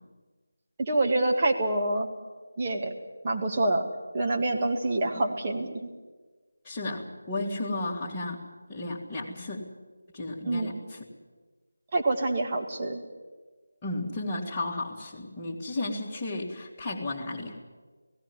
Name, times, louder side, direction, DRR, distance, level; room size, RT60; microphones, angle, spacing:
voice 1, 0.8-2.1 2.6-2.9 3.2-5.9 10.5-10.8 11.9-13.0, right 2 dB, 25° right, 1 dB, 2.0 m, -26 dB
voice 2, 6.6-8.4 8.7-9.7 10.1-11.0 13.8-17.6, left 2 dB, 15° left, -5 dB, 2.6 m, -33 dB
17.0 x 17.0 x 9.6 m, 1.3 s
figure-of-eight pair, 160°, 0 cm